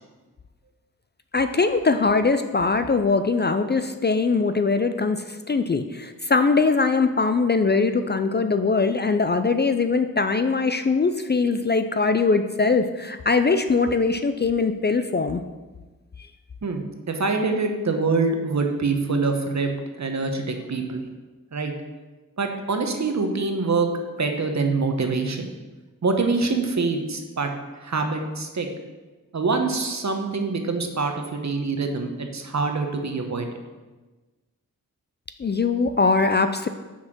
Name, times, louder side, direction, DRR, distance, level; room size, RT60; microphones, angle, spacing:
voice 1, 1.3-15.4 35.4-36.7, left 4 dB, 30° left, 9 dB, 0.4 m, -21 dB
voice 2, 16.6-21.0 21.5-21.7 22.4-23.9 24.2-25.5 26.0-27.5 27.8-28.7 29.3-33.5, right 4 dB, 55° right, 5 dB, 1.0 m, -25 dB
6.1 x 4.3 x 6.0 m, 1.2 s
cardioid pair, 55°, 34 cm